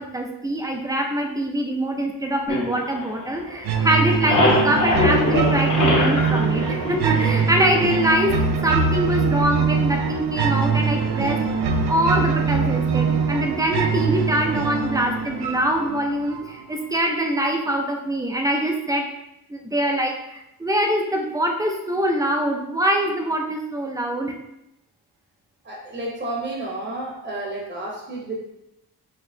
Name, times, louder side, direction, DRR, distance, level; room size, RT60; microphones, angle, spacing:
voice 1, 0.0-11.5 11.9-19.1 19.5-24.3, right 1 dB, 10° right, 2 dB, 0.4 m, -24 dB
sound 1, 2.5-3.6 3.9-7.6, left 1 dB, 55° left, 1.0 m, -23 dB
sound 2, 3.7-16.6, right 5 dB, 75° right, 0.5 m, -23 dB
voice 2, 25.6-28.3, right 2 dB, 30° right, -3 dB, 0.8 m, -31 dB
5.5 x 2.9 x 2.7 m, 0.87 s
wide cardioid pair, 160°, 39 cm